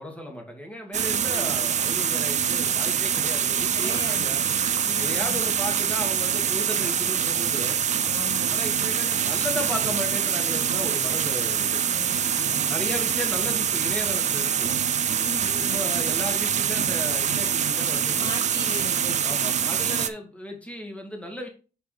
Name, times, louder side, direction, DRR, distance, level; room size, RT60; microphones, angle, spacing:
voice 1, 0.0-4.4 5.0-7.8 8.5-11.8 12.7-14.7 15.7-18.3 19.2-21.5, left 1 dB, 10° left, 1 dB, 2.4 m, -35 dB
sound 1, 0.9-20.1, right 8 dB, 50° right, 0.6 m, -25 dB
voice 2, 1.2-1.7 3.7-4.4 4.8-5.5 8.0-8.6 11.8-12.7 15.2-15.9 18.2-19.2, left 3 dB, 30° left, 2 dB, 1.2 m, -39 dB
6.6 x 6.1 x 3.5 m, 0.33 s
cardioid pair, 115°, 15 cm